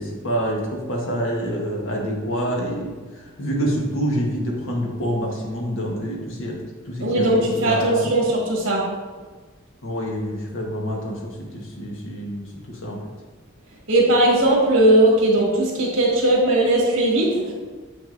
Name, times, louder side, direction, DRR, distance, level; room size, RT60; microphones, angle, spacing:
voice 1, 0.0-6.6 6.8-8.1 9.8-13.1, equal, 65° left, -1 dB, 1.3 m, -27 dB
voice 2, 7.0-8.9 13.9-17.5, right 1 dB, 65° right, -4 dB, 1.7 m, -18 dB
7.4 x 6.1 x 2.6 m, 1.4 s
head